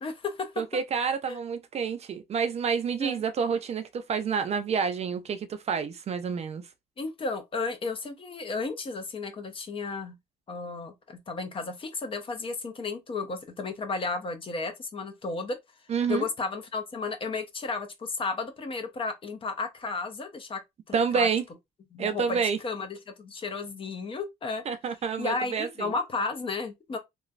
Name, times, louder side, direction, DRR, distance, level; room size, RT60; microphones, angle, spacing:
voice 1, 0.0-0.5 1.3-1.4 3.0-3.2 7.0-10.1 10.5-15.6 16.1-20.6 20.9-21.3 21.9-24.6 25.2-27.0, left 4 dB, 30° left, 0.7 m, -33 dB
voice 2, 0.6-6.6 15.9-16.2 20.9-21.4 22.0-22.6 24.7-25.9, right 6 dB, 40° right, 0.4 m, -28 dB
3.1 x 2.2 x 2.4 m
cardioid pair, 110°, 17 cm